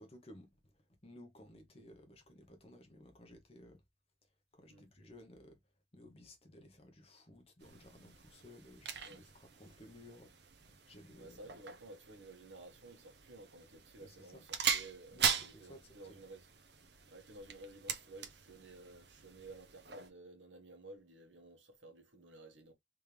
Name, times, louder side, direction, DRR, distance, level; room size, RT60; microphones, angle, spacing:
voice 1, 0.0-3.8 4.5-5.6 5.9-11.5 14.0-14.4 15.1-16.2, left 1 dB, 30° left, 1.1 m, -57 dB
sound 1, 7.6-20.1, right 7 dB, 60° right, 0.8 m, -41 dB
voice 2, 11.1-16.5 17.1-22.7, right 2 dB, 75° right, 1.3 m, -54 dB
3.7 x 3.2 x 3.3 m
head